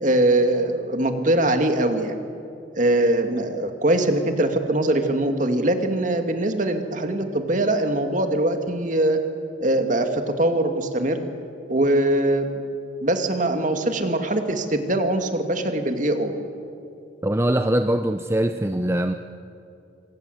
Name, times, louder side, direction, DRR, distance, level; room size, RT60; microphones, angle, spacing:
voice 1, 0.0-2.1 2.8-9.2 9.6-11.2 11.7-12.6 13.0-16.3, right 1 dB, 45° right, 6 dB, 2.3 m, -22 dB
voice 2, 17.2-19.1, right 1 dB, 15° right, 7 dB, 0.7 m, -22 dB
27.0 x 26.0 x 8.0 m, 2.6 s
head